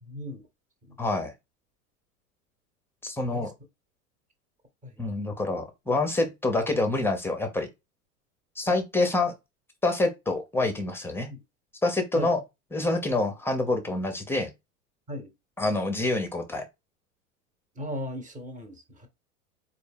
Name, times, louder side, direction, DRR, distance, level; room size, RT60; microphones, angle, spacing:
voice 1, 0.0-0.4 0.8-1.0 3.2-3.5 4.8-5.0 11.3-11.4 12.1-12.4 15.1-15.3 17.7-19.1, equal, 15° right, 1.0 m, -37 dB
voice 2, 1.0-1.3 3.0-3.5 5.0-7.7 8.6-9.3 9.8-11.3 11.8-12.4 12.7-14.5 15.6-16.7, left 2 dB, 5° left, 0.6 m, -26 dB
4.2 x 2.4 x 3.5 m
figure-of-eight pair, 85°, 44 cm